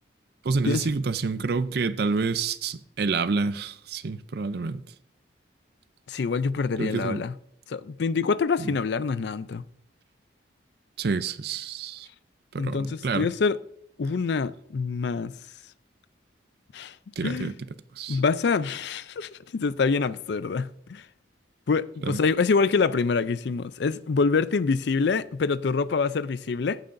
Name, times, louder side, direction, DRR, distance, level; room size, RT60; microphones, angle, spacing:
voice 1, 0.4-4.8 6.8-7.2 8.6-8.8 11.0-12.1 12.5-13.3 17.2-17.5 18.0-18.2 22.0-22.2, right 4 dB, 55° right, 0.5 m, -28 dB
voice 2, 6.1-7.3 7.7-9.6 12.6-13.6 14.0-15.3 16.7-16.9 17.2-17.5 18.1-21.1 21.7-26.8, left 4 dB, 65° left, 0.4 m, -26 dB
15.5 x 9.2 x 2.6 m
head